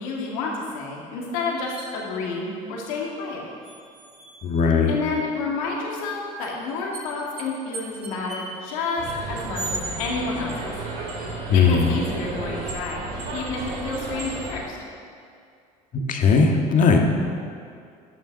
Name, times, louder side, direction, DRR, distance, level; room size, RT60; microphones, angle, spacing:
voice 1, 0.0-3.4 4.9-10.7 11.5-13.0 13.3-14.8, left 3 dB, 90° left, -2 dB, 2.0 m, -30 dB
sound 1, 1.8-1.9 3.6-4.7 6.4-6.5 6.9-7.0 7.4-7.5 7.7-8.6 9.5-9.8, right 3 dB, 40° right, 3.2 m, -36 dB
voice 2, 4.4-4.9 11.5-11.9 15.9-17.0, left 5 dB, 50° left, 2 dB, 1.7 m, -18 dB
sound 2, 9.0-14.6, right 2 dB, 60° right, 3.0 m, -33 dB
11.5 x 7.6 x 6.4 m, 2.3 s
supercardioid pair, 85°, 17 cm